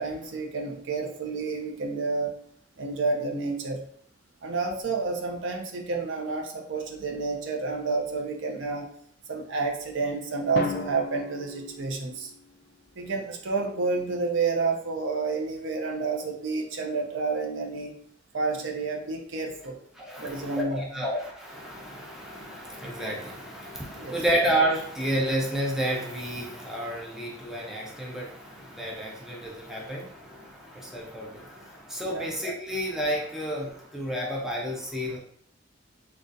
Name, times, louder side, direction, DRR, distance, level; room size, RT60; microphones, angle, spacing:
voice 1, 0.0-2.3 2.8-3.8 4.4-8.9 9.3-12.3 13.0-18.0 18.3-19.8 20.2-21.1 23.9-24.2 32.0-32.3, right 4 dB, 75° right, 1 dB, 0.6 m, -30 dB
Drum, 10.6-12.6, left 4 dB, 55° left, 0.3 m, -34 dB
voice 2, 20.0-35.2, right 1 dB, 5° right, -3 dB, 0.6 m, -31 dB
3.7 x 2.4 x 2.5 m, 0.63 s
head